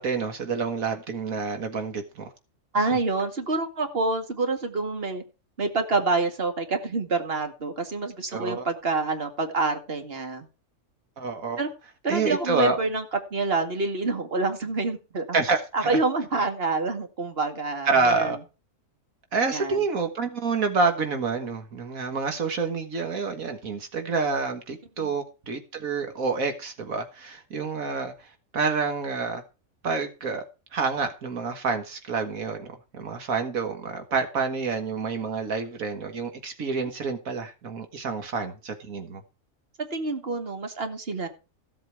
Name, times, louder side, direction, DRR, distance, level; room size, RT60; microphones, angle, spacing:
voice 1, 0.0-2.3 8.3-8.7 11.2-11.6 12.1-12.8 15.3-15.9 17.9-18.4 19.3-28.1 28.5-29.4 29.8-30.4 30.7-32.7 32.9-39.2, right 4 dB, 80° right, 1.9 m, -28 dB
voice 2, 2.7-5.2 5.6-10.5 11.6-11.7 12.0-13.0 13.3-15.4 15.7-18.4 19.5-19.8 25.0-25.1 39.9-41.3, right 3 dB, 45° right, 2.4 m, -27 dB
15.5 x 7.9 x 4.6 m
omnidirectional pair, 1.4 m